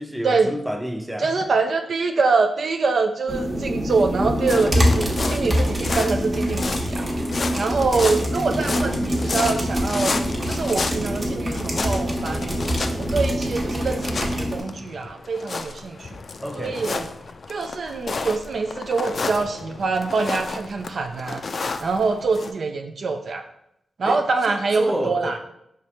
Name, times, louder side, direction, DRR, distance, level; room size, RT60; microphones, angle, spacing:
voice 1, 0.0-1.4 16.4-16.9 24.1-25.4, equal, 5° right, 4 dB, 0.6 m, -29 dB
voice 2, 1.2-7.0 7.6-10.2 10.4-12.6 13.0-16.2 16.6-17.1 17.5-21.4 21.8-23.4 24.0-25.4, right 4 dB, 65° right, 5 dB, 0.3 m, -24 dB
sound 1, 3.3-14.6, equal, 40° right, 1.1 m, -25 dB
sound 2, 4.4-22.5, left 4 dB, 60° left, 0.3 m, -32 dB
4.7 x 3.2 x 2.9 m, 0.77 s
cardioid pair, 50°, 0 cm